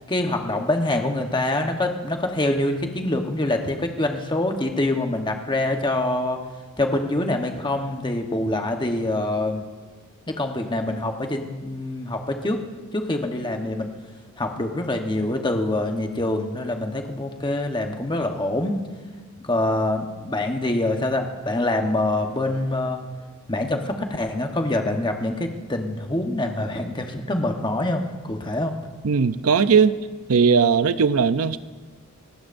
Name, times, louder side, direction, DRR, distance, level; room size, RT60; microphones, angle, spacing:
voice 1, 0.1-6.4 6.8-9.6 10.3-12.6 12.9-13.9 14.4-18.8 19.5-23.0 23.5-28.7, left 1 dB, 20° left, 4 dB, 1.1 m, -25 dB
voice 2, 29.0-30.0 30.3-31.6, right 5 dB, 70° right, 13 dB, 0.5 m, -18 dB
29.0 x 15.0 x 2.6 m, 1.4 s
head